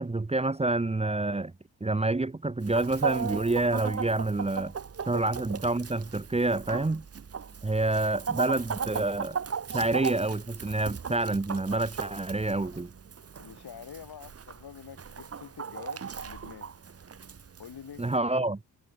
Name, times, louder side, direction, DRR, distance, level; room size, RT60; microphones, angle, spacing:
voice 1, 0.0-1.5 1.8-4.7 5.1-7.0 7.6-9.4 9.7-12.9 18.0-18.6, right 2 dB, 15° right, 1.0 m, -28 dB
Chicken rooster, 2.6-18.2, right 6 dB, 35° right, 1.1 m, -37 dB
voice 2, 13.4-16.7 17.6-18.1, left 8 dB, 65° left, 3.2 m, -46 dB
wide cardioid pair, 110°, 40 cm